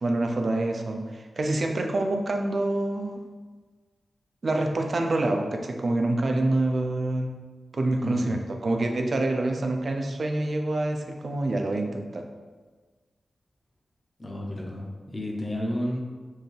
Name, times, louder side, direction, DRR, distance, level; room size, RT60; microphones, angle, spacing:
voice 1, 0.0-3.2 4.4-7.3 7.7-12.2, right 2 dB, 45° right, 3 dB, 0.4 m, -26 dB
voice 2, 8.0-8.4 14.2-16.0, left 1 dB, 20° left, -1 dB, 0.7 m, -31 dB
4.6 x 3.4 x 3.2 m, 1.4 s
wide cardioid pair, 160°, 0 cm